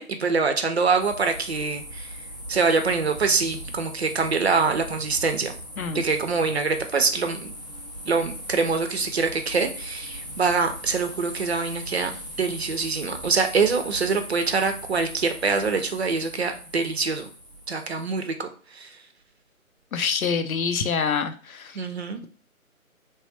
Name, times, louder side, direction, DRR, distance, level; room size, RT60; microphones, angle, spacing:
voice 1, 0.0-2.1 2.5-5.5 5.9-7.5 8.1-12.1 12.4-17.3 17.7-18.5 18.8-18.9 21.7-22.2, right 4 dB, 50° right, 6 dB, 0.5 m, -24 dB
sound 1, 1.0-18.1, equal, 30° left, 0.5 m, -39 dB
voice 2, 19.9-21.7, left 6 dB, 75° left, 9 dB, 0.6 m, -26 dB
3.1 x 2.3 x 3.0 m, 0.38 s
figure-of-eight pair, 155°, 42 cm